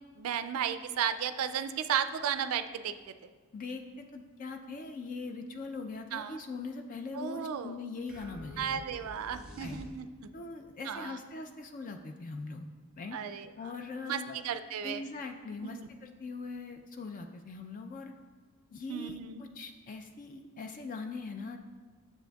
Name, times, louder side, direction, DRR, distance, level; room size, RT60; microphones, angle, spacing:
voice 1, 0.2-2.9 6.1-6.4 7.1-7.8 8.6-10.1 10.9-11.2 13.1-13.5 14.1-15.0 15.6-15.9 18.9-19.4, right 8 dB, 65° right, 11 dB, 0.3 m, -34 dB
voice 2, 3.5-8.8 9.6-9.8 10.3-12.7 13.0-13.2 13.6-14.4 14.8-18.1 18.7-21.6, left 3 dB, 35° left, 5 dB, 0.3 m, -41 dB
sound 1, 8.1-10.4, equal, 5° right, 1.0 m, -49 dB
9.4 x 6.9 x 2.3 m, 1.4 s
head